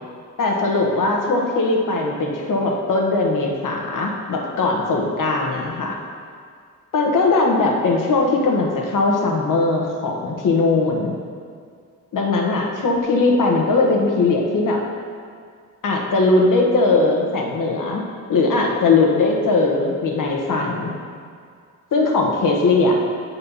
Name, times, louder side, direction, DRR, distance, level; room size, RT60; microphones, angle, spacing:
voice 1, 0.4-6.0 6.9-11.1 12.1-14.8 15.8-18.0 18.3-20.9 21.9-23.0, left 3 dB, 70° left, 0 dB, 1.2 m, -19 dB
8.4 x 4.3 x 5.4 m, 2.2 s
wide cardioid pair, 145°, 33 cm